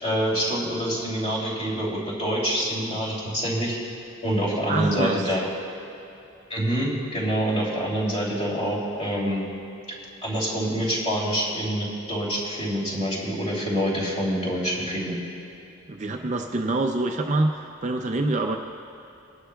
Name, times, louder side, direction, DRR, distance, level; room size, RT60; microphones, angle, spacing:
voice 1, 0.0-3.7 4.2-5.5 6.5-9.4 10.2-15.1, equal, 30° left, -5 dB, 2.9 m, -26 dB
voice 2, 4.7-5.3 15.9-18.6, right 2 dB, 35° right, 3 dB, 0.5 m, -25 dB
20.5 x 11.5 x 2.3 m, 2.8 s
head